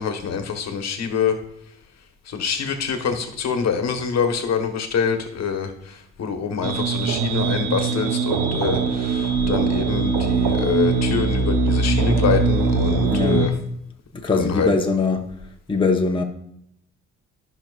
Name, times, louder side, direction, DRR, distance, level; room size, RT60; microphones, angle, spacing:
voice 1, 0.0-1.4 2.3-13.5 14.3-14.7, left 6 dB, 60° left, 1.2 m, -25 dB
sound 1, 6.6-13.5, right 4 dB, 85° right, 0.9 m, -21 dB
voice 2, 13.1-13.5 14.1-15.3 15.7-16.2, left 4 dB, 15° left, 1.0 m, -21 dB
13.5 x 5.9 x 2.4 m
cardioid pair, 90°, 30 cm